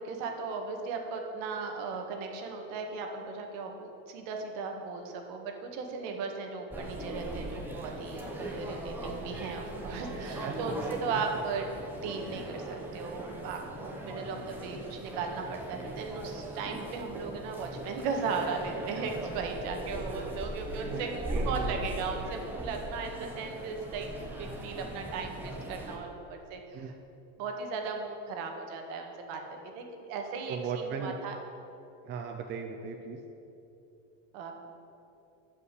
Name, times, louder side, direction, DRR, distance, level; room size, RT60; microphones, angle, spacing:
voice 1, 0.0-11.7 12.0-24.1 24.4-26.9 27.4-31.4 34.3-34.5, right 4 dB, 55° right, 3 dB, 1.7 m, -37 dB
sound 1, 6.7-26.0, right 1 dB, 5° right, 1.1 m, -39 dB
voice 2, 10.4-10.8 11.1-11.2 20.9-21.0 21.3-21.9 26.7-26.9 30.5-31.2 32.0-33.2, right 6 dB, 30° right, 3 dB, 0.6 m, -37 dB
12.5 x 5.6 x 8.2 m, 2.9 s
cardioid pair, 165°, 39 cm